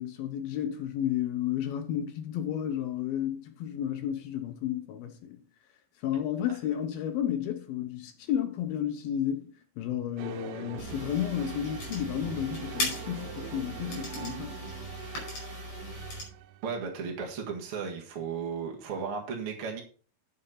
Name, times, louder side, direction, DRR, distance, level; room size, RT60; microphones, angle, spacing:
voice 1, 0.0-5.4 6.0-14.7, left 10 dB, 75° left, 2.4 m, -32 dB
sound 1, 10.2-16.7, right 10 dB, 85° right, 2.6 m, -42 dB
sound 2, 10.8-16.2, left 2 dB, 45° left, 6.1 m, -38 dB
voice 2, 16.6-19.8, right 5 dB, 55° right, 1.6 m, -35 dB
9.4 x 6.7 x 5.6 m
omnidirectional pair, 5.0 m